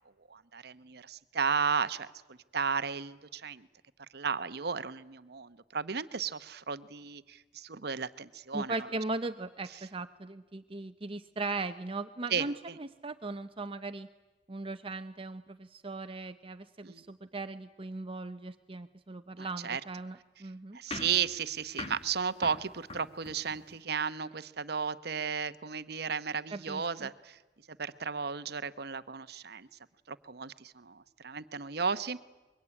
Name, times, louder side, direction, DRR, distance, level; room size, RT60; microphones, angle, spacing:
voice 1, 0.3-2.1 2.5-3.7 4.1-8.8 12.3-12.8 16.8-17.0 19.4-19.8 20.7-27.4 27.8-29.7 30.1-32.2, right 6 dB, 65° right, 13 dB, 0.9 m, -34 dB
voice 2, 8.5-14.1 14.5-20.8 26.5-27.1, right 3 dB, 30° right, 9 dB, 0.8 m, -38 dB
sound 1, 20.9-23.8, left 3 dB, 35° left, 1.7 m, -44 dB
25.0 x 23.0 x 9.9 m, 1.2 s
head